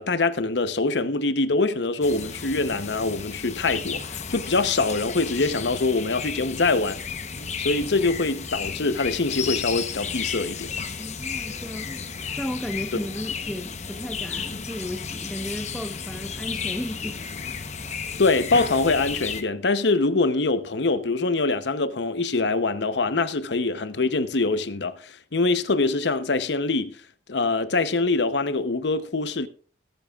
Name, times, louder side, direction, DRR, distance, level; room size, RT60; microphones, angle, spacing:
voice 1, 0.0-7.0 7.6-10.7 18.2-27.0 27.3-29.5, left 3 dB, 75° left, 0.8 m, -24 dB
sound 1, 2.0-19.4, left 6 dB, 40° left, 0.9 m, -33 dB
voice 2, 11.0-12.0 12.4-17.2, equal, ahead, 1.0 m, -34 dB
21.0 x 8.9 x 2.4 m
head